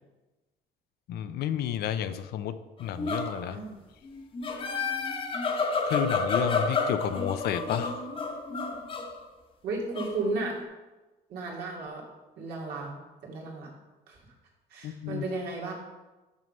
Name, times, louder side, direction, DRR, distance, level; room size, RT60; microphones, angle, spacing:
voice 1, 1.1-3.6 5.8-8.2 14.8-15.2, left 10 dB, 70° left, 12 dB, 0.5 m, -31 dB
sound 1, 2.8-3.5 4.0-9.2 9.9-10.6, left 4 dB, 30° left, 1.0 m, -30 dB
voice 2, 3.5-3.8 9.6-10.6 11.3-12.0 12.4-13.7 14.1-14.2 14.7-15.7, right 3 dB, 75° right, -2 dB, 2.2 m, -34 dB
6.2 x 5.7 x 5.3 m, 1.1 s
cardioid pair, 110°, 17 cm